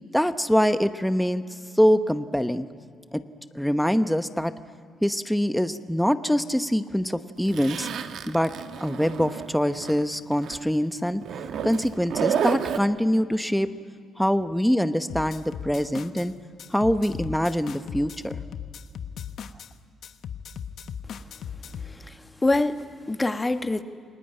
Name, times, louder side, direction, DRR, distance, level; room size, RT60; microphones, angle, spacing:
voice 1, 0.1-1.4 1.8-2.7 3.1-3.2 3.5-4.5 5.0-7.9 8.3-8.5 8.8-11.2 11.6-13.7 14.2-16.3 16.7-18.4, equal, ahead, 10 dB, 1.0 m, -24 dB
Zipper (clothing), 7.5-10.0 10.3-10.6 11.2-12.8, right 8 dB, 70° right, 1.3 m, -30 dB
sound 1, 15.1-16.3 16.6-19.7 20.0-22.0, left 8 dB, 65° left, 1.1 m, -37 dB
voice 2, 21.8-23.8, left 2 dB, 20° left, 8 dB, 1.4 m, -26 dB
28.5 x 20.0 x 9.0 m, 2.2 s
cardioid pair, 90°, 0 cm